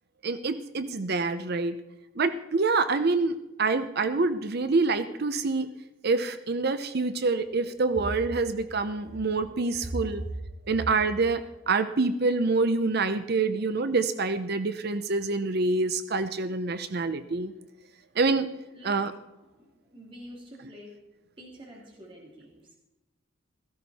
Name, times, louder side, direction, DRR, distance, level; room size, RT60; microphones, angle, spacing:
voice 1, 0.2-1.8 2.2-5.7 6.0-10.2 10.7-17.5 18.2-18.5 18.8-19.1, right 3 dB, 50° right, 11 dB, 0.7 m, -26 dB
voice 2, 19.3-20.9 21.4-22.8, equal, 25° right, -2 dB, 2.8 m, -46 dB
16.5 x 15.0 x 4.2 m, 0.98 s
head